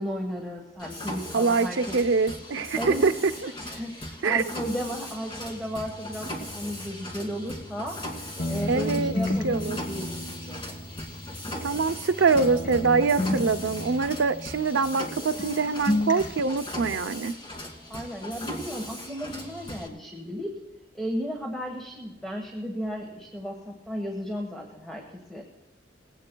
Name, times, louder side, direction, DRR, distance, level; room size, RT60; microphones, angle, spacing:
voice 1, 0.0-2.0 2.8-3.0 3.6-10.6 17.9-20.6 20.9-25.4, equal, ahead, 0 dB, 1.4 m, -34 dB
Mechanisms, 0.8-19.9, left 1 dB, 25° left, 2.2 m, -38 dB
voice 2, 1.3-3.1 3.4-3.5 4.2-4.4 8.7-9.1 9.4-9.8 11.6-17.3, right 4 dB, 80° right, 9 dB, 0.6 m, -24 dB
sound 1, 8.4-12.1 12.4-15.1 15.4-16.4, left 1 dB, 45° left, 1.0 m, -32 dB
21.0 x 17.0 x 2.3 m, 1.1 s
head